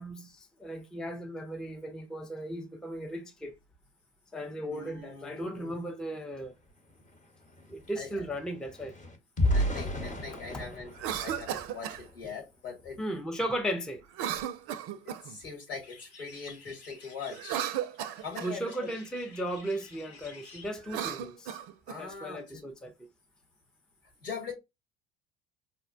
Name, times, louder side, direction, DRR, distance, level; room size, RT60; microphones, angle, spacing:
voice 1, 0.0-3.5 4.3-6.5 7.7-9.0 10.5-10.7 13.0-14.0 18.4-21.6 22.0-22.9, right 1 dB, ahead, 0.5 m, -36 dB
voice 2, 4.7-5.8 7.9-8.2 9.5-13.0 15.0-17.6 18.2-18.9 21.9-22.6 24.2-24.5, left 5 dB, 75° left, 1.6 m, -42 dB
sound 1, 6.4-6.5 6.8-12.3 12.8-13.0 13.4-13.6, left 1 dB, 25° left, 1.0 m, -34 dB
Cough, 10.9-12.0 14.1-15.4 17.3-18.5 20.8-22.0, right 10 dB, 50° right, 0.4 m, -35 dB
sound 2, 15.8-20.8, left 4 dB, 55° left, 1.1 m, -52 dB
4.2 x 2.1 x 2.4 m
hypercardioid pair, 65°, 29 cm